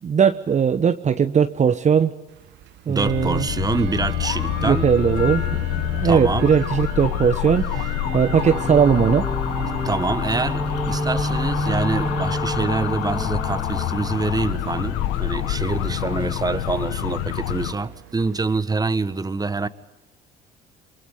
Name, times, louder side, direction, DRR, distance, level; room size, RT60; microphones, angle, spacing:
voice 1, 0.0-2.1 2.9-3.5 4.6-9.3, right 7 dB, 35° right, 1.1 m, -19 dB
Bell / Tick-tock, 2.3-18.6, right 15 dB, 60° right, 1.1 m, -39 dB
voice 2, 2.9-4.9 6.0-6.4 9.8-19.7, right 3 dB, 20° right, 1.5 m, -26 dB
sound 1, 3.0-17.7, left 13 dB, 70° left, 1.2 m, -27 dB
sound 2, 8.0-17.2, equal, ahead, 2.3 m, -30 dB
28.5 x 24.5 x 8.4 m
hypercardioid pair, 60°, 21 cm